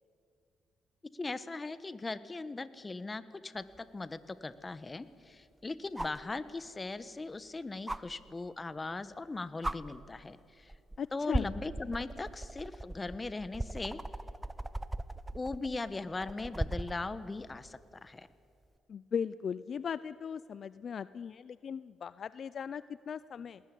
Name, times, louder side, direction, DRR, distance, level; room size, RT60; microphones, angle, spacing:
voice 1, 1.1-10.7 11.1-14.0 15.3-18.3, left 3 dB, 25° left, 14 dB, 1.2 m, -39 dB
sound 1, 3.7-3.8 6.0-6.3 7.9-8.0 9.1-9.3 9.6-9.8 10.7-11.0 11.3-17.0 18.7-18.8, right 1 dB, 10° right, 0.9 m, -37 dB
voice 2, 11.0-11.6 18.9-23.6, left 7 dB, 55° left, 17 dB, 0.5 m, -38 dB
19.5 x 19.5 x 10.0 m, 2.4 s
cardioid pair, 90°, 0 cm